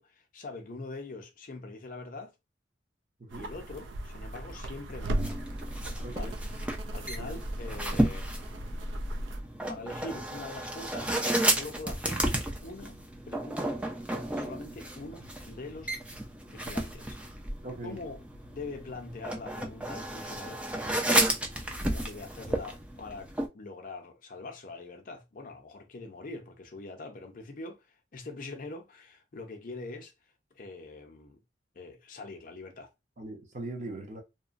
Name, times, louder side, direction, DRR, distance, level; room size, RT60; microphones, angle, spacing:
voice 1, 0.0-2.3 3.3-5.4 6.0-6.4 6.9-8.3 9.7-11.1 11.4-12.3 12.6-13.8 14.2-16.0 16.5-17.2 17.8-18.2 18.5-20.6 21.8-23.3 23.5-30.1 30.6-31.4 31.8-32.9, left 3 dB, 45° left, 0.5 m, -43 dB
voice 2, 3.2-3.5 6.0-6.4 7.2-7.4 17.6-18.0 33.2-34.2, right 2 dB, 40° right, 0.7 m, -40 dB
sound 1, 3.3-9.4, right 1 dB, 75° right, 0.4 m, -36 dB
sound 2, 5.2-23.5, right 1 dB, 5° right, 0.3 m, -32 dB
2.8 x 2.1 x 2.5 m
head